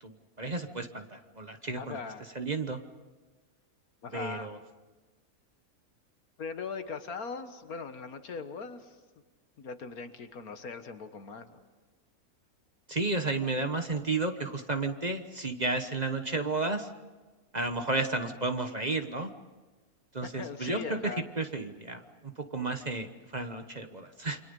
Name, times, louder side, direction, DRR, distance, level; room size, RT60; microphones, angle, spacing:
voice 1, 0.0-2.0 2.3-2.8 4.1-4.6 12.9-16.9 17.5-19.3 20.1-24.4, right 3 dB, 30° right, 7 dB, 1.2 m, -32 dB
voice 2, 1.8-2.2 4.0-4.5 6.4-9.0 9.6-11.6 20.2-21.3, left 5 dB, 75° left, 9 dB, 1.9 m, -40 dB
28.5 x 25.5 x 5.4 m, 1.3 s
omnidirectional pair, 1.6 m